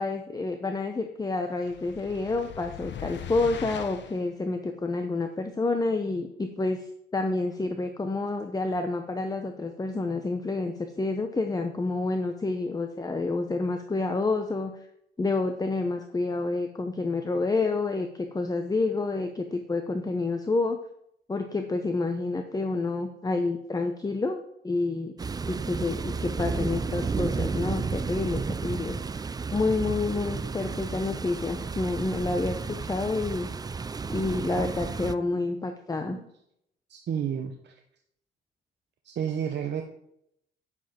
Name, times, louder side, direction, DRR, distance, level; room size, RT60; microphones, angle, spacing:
voice 1, 0.0-14.8 15.2-20.8 21.3-25.1 25.5-29.3 29.5-33.5 34.1-36.2, left 3 dB, 20° left, 6 dB, 0.9 m, -29 dB
sound 1, 1.6-4.2, left 8 dB, 65° left, 1.0 m, -40 dB
sound 2, 25.2-35.1, right 4 dB, 20° right, 0.4 m, -32 dB
voice 2, 36.9-37.8 39.0-39.8, right 8 dB, 60° right, 4 dB, 1.0 m, -31 dB
9.9 x 7.2 x 4.4 m, 0.74 s
cardioid pair, 90°, 20 cm